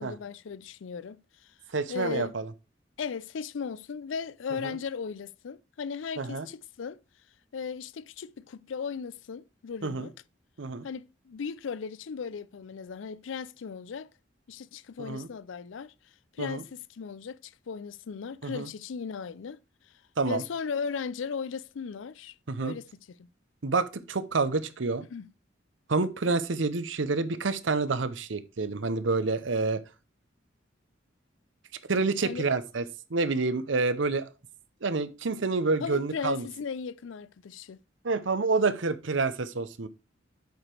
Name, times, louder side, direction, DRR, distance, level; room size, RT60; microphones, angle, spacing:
voice 1, 0.0-1.5 1.9-2.4 3.0-7.0 7.5-10.1 10.8-14.1 14.5-15.9 16.3-19.6 20.2-23.3 25.1-25.3 32.2-32.5 35.8-37.8, left 6 dB, 85° left, 0.4 m, -37 dB
voice 2, 1.7-2.5 4.6-4.7 6.2-6.5 9.8-10.1 10.6-10.9 15.0-15.3 16.4-16.6 18.4-18.7 20.2-20.4 22.5-22.7 23.6-25.1 25.9-29.8 31.9-32.8 33.1-34.3 34.8-36.5 38.0-39.9, right 3 dB, 80° right, 0.8 m, -28 dB
7.9 x 5.1 x 4.4 m
head